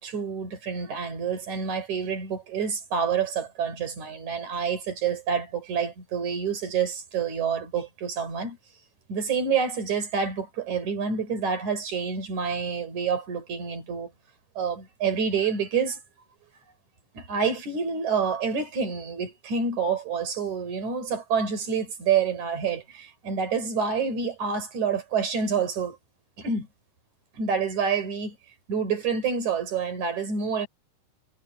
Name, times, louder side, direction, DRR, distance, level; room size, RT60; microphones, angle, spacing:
voice 1, 0.0-8.6 9.1-14.1 14.6-16.0 17.1-26.0 26.4-26.7 27.3-28.4 28.7-30.7, right 6 dB, 50° right, 5.8 m, -28 dB
omnidirectional pair, 4.6 m